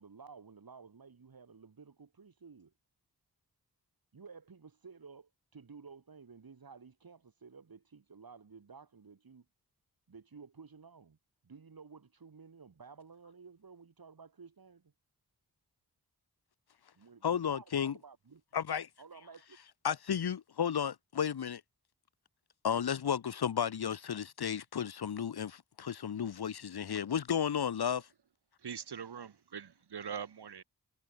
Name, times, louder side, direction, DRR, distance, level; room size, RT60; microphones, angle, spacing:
voice 1, 0.0-2.7 4.1-9.5 10.1-11.2 11.4-14.9 16.9-18.4 18.7-19.6, right 5 dB, 65° right, 4.7 m, -54 dB
voice 2, 17.2-18.0 18.5-18.9 19.8-21.6 22.6-28.1, left 8 dB, 75° left, 1.1 m, -33 dB
voice 3, 28.6-30.6, right 7 dB, 90° right, 2.1 m, -42 dB
wide cardioid pair, 75°, 39 cm